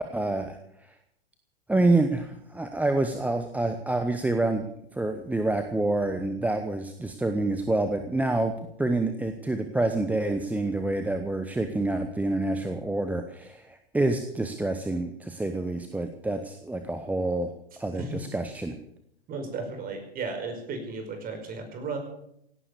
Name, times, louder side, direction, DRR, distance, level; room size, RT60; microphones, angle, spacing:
voice 1, 0.1-0.6 1.7-4.6 4.9-8.5 8.8-17.5 17.8-18.8, right 2 dB, 5° right, 7 dB, 1.1 m, -27 dB
voice 2, 19.3-22.0, right 4 dB, 30° right, 6 dB, 5.1 m, -34 dB
17.5 x 11.0 x 6.9 m, 0.74 s
figure-of-eight pair, 105°, 31 cm